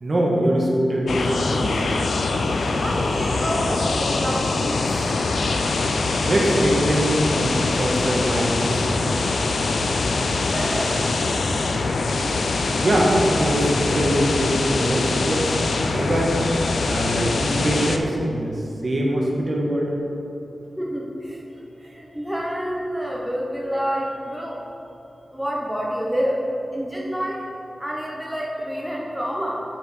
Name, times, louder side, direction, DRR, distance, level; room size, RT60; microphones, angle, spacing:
voice 1, 0.0-1.8 6.2-9.1 11.0-11.1 12.7-16.4 16.8-19.9, right 1 dB, 45° right, -2 dB, 1.4 m, -23 dB
sound 1, 1.1-18.0, left 3 dB, 80° left, 0.5 m, -23 dB
voice 2, 2.8-4.9 10.5-10.9 20.8-21.4 21.8-24.6 25.3-26.4 26.7-27.5 27.8-29.6, equal, 5° right, -3 dB, 0.8 m, -28 dB
7.9 x 4.8 x 5.4 m, 2.8 s
wide cardioid pair, 105°, 0 cm